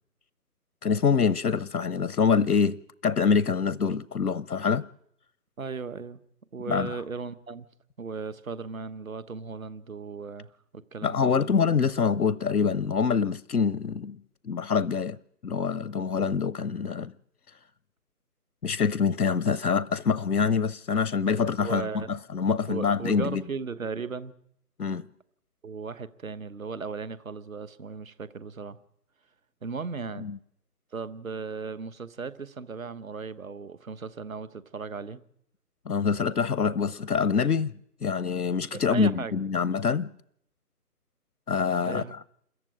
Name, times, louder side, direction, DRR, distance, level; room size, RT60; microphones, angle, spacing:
voice 1, 0.8-4.9 6.7-7.0 11.0-14.2 14.4-15.2 15.4-17.1 18.6-22.0 22.3-23.4 24.8-25.0 30.2-30.4 35.9-37.7 38.0-40.1 41.5-42.0, left 6 dB, 85° left, 0.8 m, -25 dB
voice 2, 5.6-6.2 6.5-7.7 8.0-11.5 21.6-22.1 22.7-24.4 25.6-28.8 29.6-30.3 30.9-35.2 38.7-39.4 41.8-42.1, right 5 dB, 55° right, 1.3 m, -36 dB
27.5 x 14.5 x 8.9 m
figure-of-eight pair, 155°, 47 cm